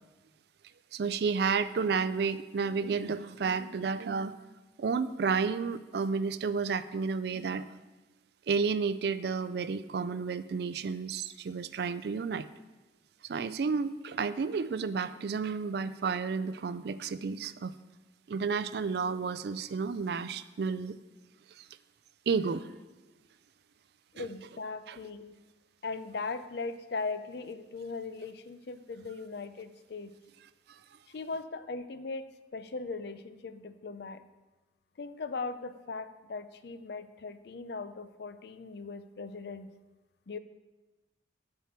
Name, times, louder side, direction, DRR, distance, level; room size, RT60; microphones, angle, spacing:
voice 1, 0.9-4.4 4.8-7.8 8.5-12.5 13.2-17.7 18.3-20.9 21.6-21.7 22.3-22.7 24.2-24.3 24.9-25.0, right 5 dB, 55° right, 13 dB, 0.3 m, -31 dB
voice 2, 24.1-25.4 25.8-30.1 31.1-32.3 32.5-34.2 35.0-39.7 40.3-40.4, left 4 dB, 55° left, 11 dB, 0.4 m, -39 dB
10.5 x 4.4 x 5.9 m, 1.1 s
head